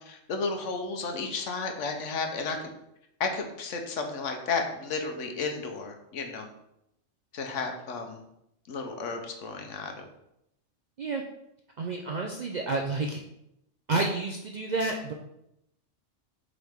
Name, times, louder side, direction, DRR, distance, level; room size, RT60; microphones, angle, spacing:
voice 1, 0.0-2.7 3.2-6.5 7.3-8.2 8.7-10.0, left 4 dB, 70° left, 4 dB, 1.2 m, -33 dB
voice 2, 11.8-13.2 13.9-15.1, right 3 dB, 55° right, 1 dB, 0.5 m, -30 dB
7.3 x 3.8 x 3.5 m, 0.82 s
omnidirectional pair, 1.3 m